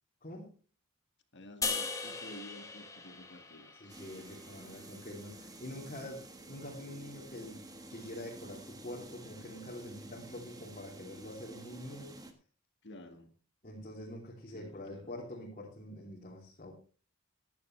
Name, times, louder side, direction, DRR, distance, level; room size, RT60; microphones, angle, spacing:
voice 1, 0.2-0.5 3.8-6.2 6.5-12.1 13.6-16.7, left 1 dB, 40° left, 3.0 m, -45 dB
voice 2, 1.3-4.0 12.8-13.3 14.5-15.2, left 1 dB, 55° left, 1.7 m, -51 dB
sound 1, 1.6-4.9, left 4 dB, 15° left, 1.8 m, -39 dB
sound 2, 3.9-12.3, right 2 dB, 20° right, 1.4 m, -51 dB
15.5 x 10.5 x 3.3 m
head